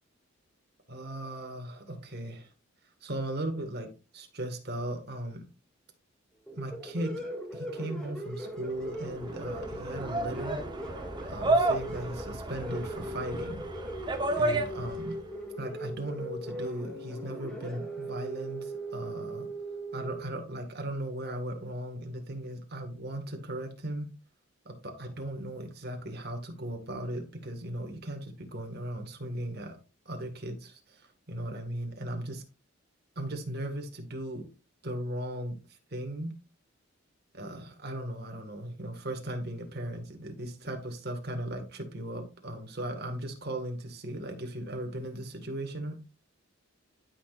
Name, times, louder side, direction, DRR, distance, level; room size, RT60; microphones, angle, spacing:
voice 1, 0.9-2.5 3.0-5.4 6.5-7.1 7.5-10.6 11.2-13.6 14.4-15.2 15.6-19.5 19.9-24.1 24.7-29.8 30.1-31.0 31.3-32.4 33.2-34.4 34.8-35.6 35.9-36.3 37.3-46.0, right 1 dB, 50° right, 1.9 m, -37 dB
sound 1, 6.5-20.2, right 1 dB, 5° left, 2.2 m, -39 dB
sound 2, 8.8-15.2, right 2 dB, 20° right, 1.0 m, -32 dB
12.5 x 6.0 x 2.5 m
head